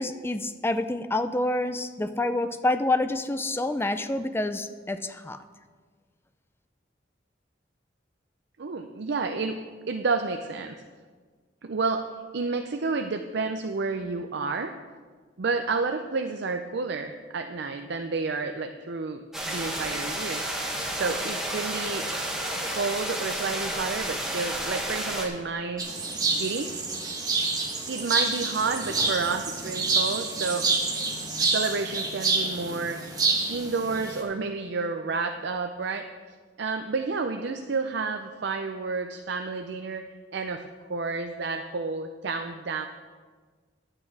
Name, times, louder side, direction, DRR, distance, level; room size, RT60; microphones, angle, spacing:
voice 1, 0.0-5.4, left 2 dB, 15° left, 10 dB, 0.4 m, -27 dB
voice 2, 8.6-9.6 9.9-10.7 11.6-12.0 12.3-14.7 15.4-20.4 20.9-22.0 22.7-25.8 26.3-26.7 27.9-30.6 31.4-33.0 33.5-36.0 36.6-40.0 40.3-40.6 40.9-42.9, right 4 dB, 65° right, 6 dB, 0.5 m, -30 dB
sound 1, 19.3-25.3, right 1 dB, ahead, 1.6 m, -31 dB
sound 2, 25.8-34.2, right 3 dB, 20° right, 1.4 m, -28 dB
11.0 x 8.9 x 4.7 m, 1.5 s
head